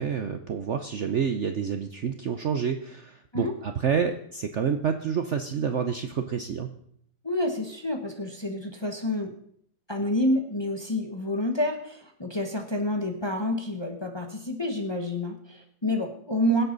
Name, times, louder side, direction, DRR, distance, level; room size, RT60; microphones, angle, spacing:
voice 1, 0.0-6.7, right 7 dB, 55° right, 7 dB, 0.8 m, -28 dB
voice 2, 7.2-9.3 9.9-16.6, left 1 dB, 20° left, 3 dB, 0.9 m, -28 dB
23.0 x 8.2 x 4.0 m, 0.67 s
omnidirectional pair, 1.8 m